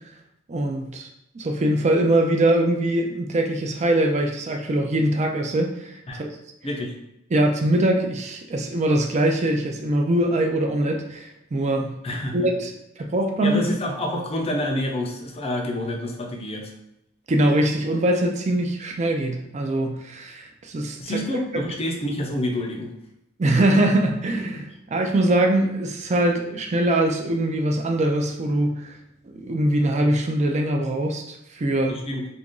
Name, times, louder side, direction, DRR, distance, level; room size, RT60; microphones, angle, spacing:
voice 1, 0.5-1.1 1.3-6.3 7.3-12.0 12.3-12.7 13.0-13.6 17.3-21.0 23.4-28.9 29.3-32.0, right 1 dB, 35° right, 3 dB, 0.4 m, -22 dB
voice 2, 6.6-7.0 12.0-12.5 13.4-16.7 21.0-22.9 31.9-32.3, left 1 dB, 30° left, 1 dB, 0.5 m, -28 dB
2.9 x 2.5 x 3.7 m, 0.83 s
head